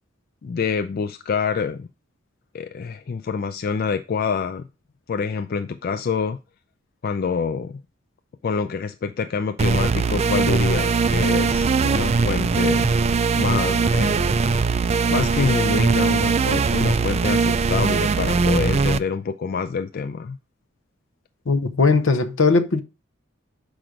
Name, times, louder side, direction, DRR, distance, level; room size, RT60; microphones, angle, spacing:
voice 1, 0.4-1.9 2.5-4.7 5.1-6.4 7.0-7.8 8.4-12.9 13.4-14.4 15.1-20.4, left 5 dB, 50° left, 0.4 m, -26 dB
sound 1, 9.6-19.0, right 4 dB, 30° right, 0.3 m, -20 dB
voice 2, 21.5-22.8, left 4 dB, 75° left, 0.8 m, -19 dB
6.1 x 5.1 x 5.0 m
head